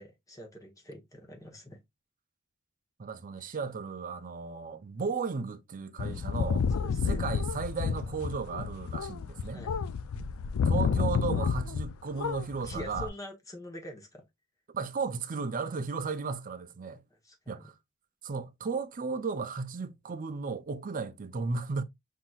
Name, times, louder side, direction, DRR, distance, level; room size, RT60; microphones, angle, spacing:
voice 1, 0.0-1.8 3.4-3.6 6.7-7.2 9.5-9.7 12.6-14.2 17.2-17.7, left 1 dB, 15° left, 1.0 m, -45 dB
voice 2, 3.0-6.7 7.0-9.6 10.6-13.1 14.7-17.0 17.5-17.7 18.2-21.8, right 4 dB, 40° right, 0.5 m, -35 dB
sound 1, 6.0-11.9 12.2-13.1, left 6 dB, 70° left, 0.4 m, -30 dB
5.9 x 2.7 x 2.3 m
head